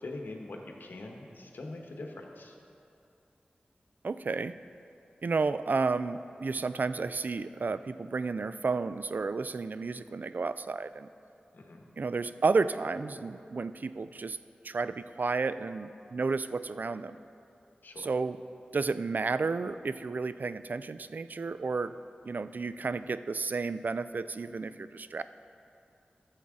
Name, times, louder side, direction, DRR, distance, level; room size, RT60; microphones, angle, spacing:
voice 1, 0.0-2.5 11.5-11.8 17.8-18.1, left 2 dB, 75° left, 1 dB, 1.1 m, -43 dB
voice 2, 4.0-4.5 5.2-11.1 12.0-14.4 14.6-17.2 18.0-18.4 18.7-21.9 22.2-25.2, right 4 dB, 60° right, 13 dB, 0.3 m, -32 dB
13.0 x 7.3 x 3.7 m, 2.6 s
cardioid pair, 40°, 3 cm